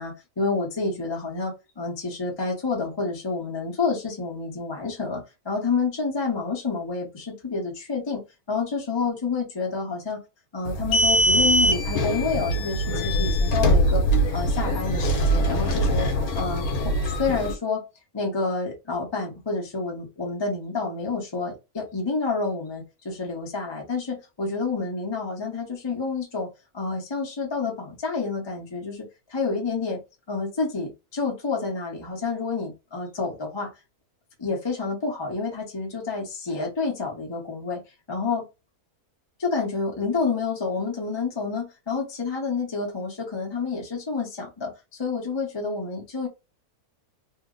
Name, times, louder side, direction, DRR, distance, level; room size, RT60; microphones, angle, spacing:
voice 1, 0.0-8.2 8.5-10.2 10.5-14.0 14.3-16.1 16.3-16.7 17.0-17.8 18.1-26.5 26.7-30.0 30.3-33.7 34.4-37.8 38.1-38.4 39.4-46.3, left 4 dB, 25° left, -1 dB, 0.7 m, -29 dB
sound 1, 10.7-17.5, equal, 75° left, 1.2 m, -22 dB
2.8 x 2.0 x 3.6 m, 0.26 s
omnidirectional pair, 1.6 m